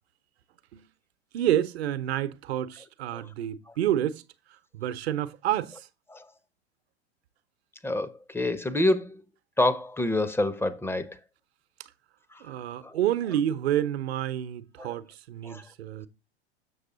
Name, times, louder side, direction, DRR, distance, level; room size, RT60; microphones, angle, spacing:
voice 1, 1.3-4.2 4.7-5.9 12.4-16.1, right 11 dB, 65° right, 0.9 m, -29 dB
voice 2, 7.8-9.2 9.6-11.2 12.8-13.0 14.8-14.9 15.4-15.6, left 1 dB, 5° left, 0.7 m, -27 dB
7.1 x 6.7 x 3.8 m
hypercardioid pair, 95°, 34 cm